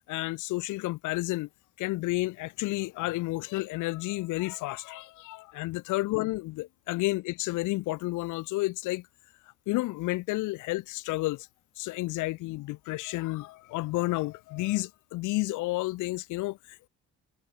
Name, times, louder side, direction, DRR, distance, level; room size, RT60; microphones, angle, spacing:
voice 1, 0.1-1.5 1.8-9.1 9.7-11.5 11.8-16.9, left 20 dB, 90° left, 0.5 m, -31 dB
cardioid pair, 110°, 30 cm